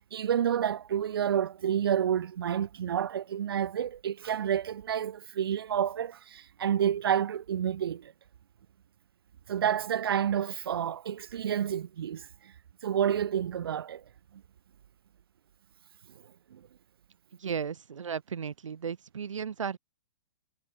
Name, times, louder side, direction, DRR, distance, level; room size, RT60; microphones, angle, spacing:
voice 1, 0.1-8.1 9.5-12.3 12.8-14.0 16.5-16.6, right 9 dB, 50° right, 3.2 m, -29 dB
voice 2, 17.4-19.8, right 7 dB, 85° right, 3.1 m, -35 dB
hypercardioid pair, 175°, 16 cm